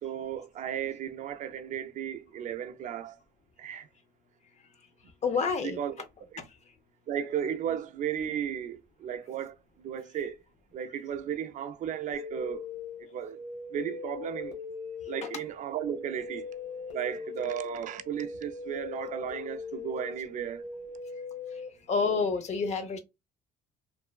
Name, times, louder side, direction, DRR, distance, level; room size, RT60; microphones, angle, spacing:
voice 1, 0.0-3.2 3.6-3.9 5.6-6.0 6.3-6.4 7.1-10.4 10.7-12.6 13.1-13.4 13.7-14.6 15.1-20.7, right 9 dB, 50° right, 0.4 m, -35 dB
voice 2, 5.2-5.8 6.4-6.5 15.2-15.3 21.5-21.6 21.9-23.0, left 5 dB, 40° left, 0.6 m, -28 dB
sound 1, 12.1-21.7, left 5 dB, 80° left, 1.1 m, -40 dB
3.0 x 2.1 x 2.3 m
cardioid pair, 110°, 17 cm